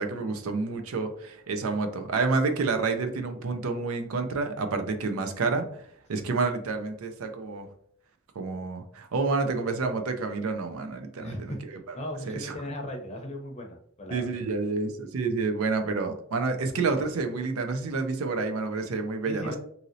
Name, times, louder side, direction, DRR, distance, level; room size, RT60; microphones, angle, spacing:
voice 1, 0.0-5.7 6.1-7.7 8.4-11.8 12.3-12.5 14.1-19.6, right 4 dB, 85° right, 6 dB, 0.5 m, -29 dB
voice 2, 11.2-11.6 11.9-14.3 19.2-19.6, left 1 dB, 30° left, 2 dB, 0.6 m, -37 dB
3.0 x 2.7 x 2.6 m, 0.65 s
head